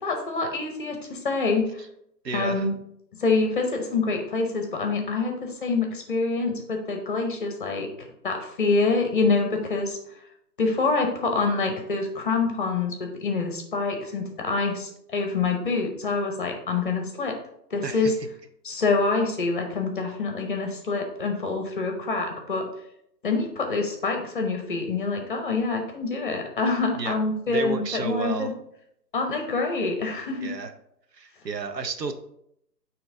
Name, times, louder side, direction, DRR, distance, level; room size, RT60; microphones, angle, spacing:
voice 1, 0.0-1.8 2.3-2.7 3.2-7.9 8.2-10.0 10.6-17.3 17.7-18.1 18.6-22.7 23.2-28.5 29.1-30.5, left 3 dB, 30° left, 3 dB, 0.8 m, -26 dB
voice 2, 2.2-2.7 17.8-18.1 27.0-27.2 27.5-28.5 30.4-30.7 31.1-32.1, right 4 dB, 75° right, 7 dB, 0.9 m, -31 dB
8.7 x 3.0 x 3.7 m, 0.75 s
figure-of-eight pair, 145°, 50 cm